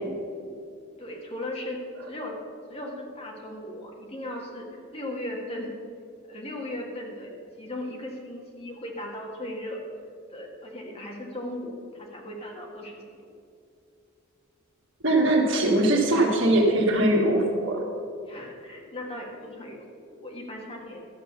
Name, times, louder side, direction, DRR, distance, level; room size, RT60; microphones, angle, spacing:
voice 1, 1.0-1.8 2.1-2.4 2.7-5.7 6.3-7.3 7.6-9.8 10.3-13.0 18.3-21.0, left 1 dB, 25° left, 0 dB, 1.7 m, -37 dB
voice 2, 15.0-17.8, right 1 dB, 60° right, -1 dB, 2.0 m, -21 dB
12.0 x 7.6 x 6.7 m, 2.4 s
head